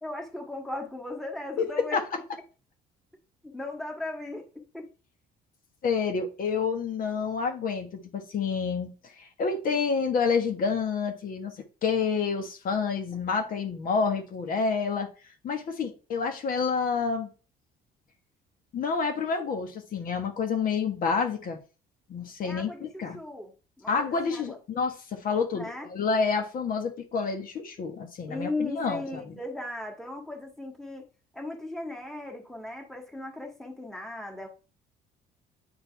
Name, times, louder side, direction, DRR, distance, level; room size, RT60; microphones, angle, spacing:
voice 1, 0.0-2.0 3.4-4.9 22.4-24.5 25.5-25.9 28.3-31.1 31.3-34.5, left 2 dB, ahead, 1.6 m, -37 dB
voice 2, 1.6-2.0 5.8-15.1 15.4-17.3 18.7-21.6 22.1-23.2 23.9-29.3, left 5 dB, 55° left, 1.5 m, -28 dB
9.0 x 3.9 x 3.5 m
cardioid pair, 110°, 17 cm